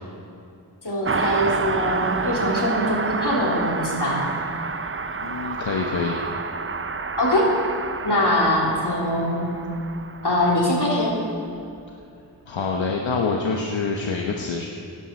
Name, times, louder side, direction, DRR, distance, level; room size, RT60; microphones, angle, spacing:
voice 1, 0.8-4.2 7.2-7.5 8.0-9.4 10.2-11.2, left 1 dB, 65° left, -4 dB, 3.6 m, -22 dB
Car passing by, 1.0-11.0 11.3-11.4, right 4 dB, 30° right, 0.6 m, -29 dB
voice 2, 5.2-6.2 12.5-14.7, left 4 dB, 85° left, 0 dB, 1.0 m, -26 dB
16.5 x 11.0 x 4.4 m, 2.5 s
wide cardioid pair, 55°, 44 cm